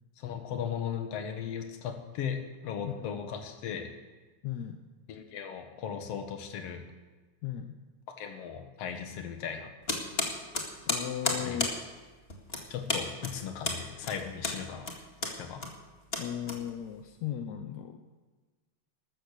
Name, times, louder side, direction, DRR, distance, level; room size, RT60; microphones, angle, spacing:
voice 1, 0.2-4.0 5.1-6.8 8.2-9.7 11.5-11.6 12.7-14.9 15.2-15.7, left 8 dB, 60° left, 6 dB, 2.4 m, -37 dB
voice 2, 4.4-4.8 7.4-7.8 10.9-11.7 16.2-18.0, left 10 dB, 80° left, 6 dB, 2.1 m, -36 dB
sound 1, 9.9-17.1, left 2 dB, 25° left, 1.8 m, -34 dB
14.0 x 13.0 x 6.6 m, 1.3 s
omnidirectional pair, 3.3 m